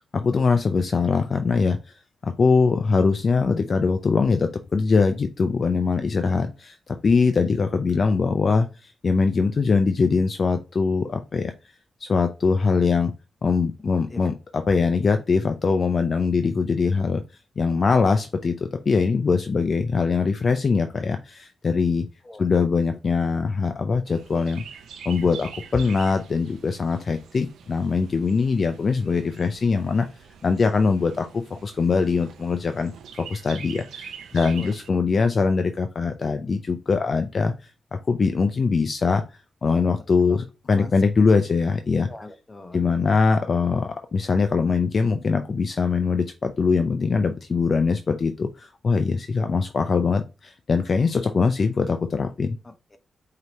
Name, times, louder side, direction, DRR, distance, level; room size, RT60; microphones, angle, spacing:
voice 1, 0.1-1.9 2.2-11.5 12.0-13.1 13.4-17.2 17.6-22.1 22.4-24.6 25.1-30.1 30.4-32.9 33.2-39.2 39.6-42.1 42.7-52.6, left 4 dB, 50° left, 7 dB, 0.5 m, -22 dB
Chirp tweet, 24.0-34.9, right 7 dB, 90° right, 0.5 m, -44 dB
voice 2, 34.3-34.7 39.8-40.0 40.3-40.4 40.7-40.9 42.1-42.8 52.6-53.0, left 2 dB, 25° left, 8 dB, 0.9 m, -42 dB
4.8 x 2.8 x 3.0 m, 0.28 s
cardioid pair, 75°, 0 cm